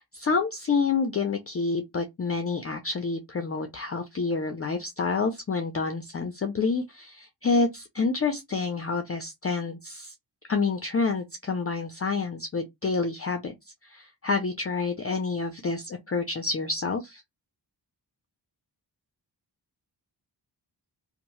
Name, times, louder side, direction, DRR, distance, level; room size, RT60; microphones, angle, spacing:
voice 1, 0.0-10.1 10.5-13.5 13.8-17.2, left 4 dB, 35° left, 0.4 m, -28 dB
2.7 x 2.0 x 3.0 m
wide cardioid pair, 105°, 43 cm